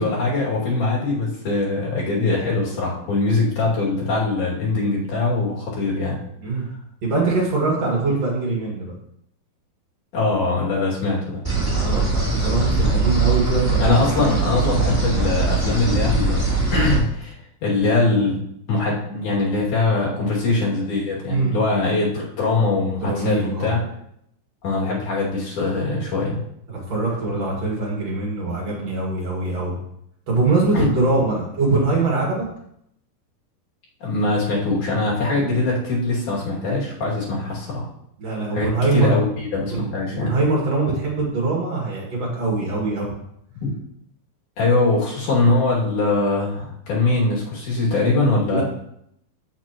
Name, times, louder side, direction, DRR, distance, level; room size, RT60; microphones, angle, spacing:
voice 1, 0.0-6.2 10.1-11.4 13.8-17.4 17.6-18.4 18.7-23.8 24.6-26.4 30.7-30.9 34.0-37.9 38.5-40.3 43.6-43.7 44.6-48.6, left 3 dB, 55° left, -5 dB, 3.7 m, -22 dB
voice 2, 7.0-8.9 11.8-13.8 21.3-21.6 23.0-23.7 26.7-29.8 30.3-32.4 35.3-35.7 38.2-39.2 39.7-39.8 40.1-43.2 48.5-48.6, right 3 dB, 50° right, -3 dB, 2.8 m, -23 dB
sound 1, 11.4-17.0, right 3 dB, 5° right, 2.3 m, -21 dB
15.5 x 6.8 x 3.0 m, 0.73 s
omnidirectional pair, 4.3 m